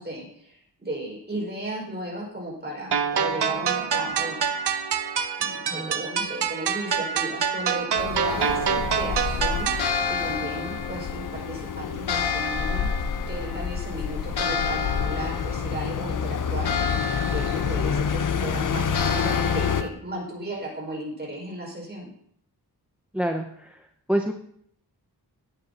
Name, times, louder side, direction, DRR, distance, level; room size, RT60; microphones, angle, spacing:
voice 1, 0.0-4.4 5.4-12.9 13.3-22.1, right 1 dB, 25° right, -2 dB, 5.4 m, -35 dB
sound 1, 2.9-9.9, right 7 dB, 85° right, 0.8 m, -26 dB
sound 2, 8.0-19.8, left 7 dB, 55° left, 0.7 m, -29 dB
sound 3, 8.3-19.9, left 5 dB, 85° left, 1.3 m, -31 dB
voice 2, 23.1-23.8 24.1-24.3, right 1 dB, 5° right, 4 dB, 0.7 m, -27 dB
17.0 x 9.3 x 2.9 m, 0.67 s
wide cardioid pair, 140°, 39 cm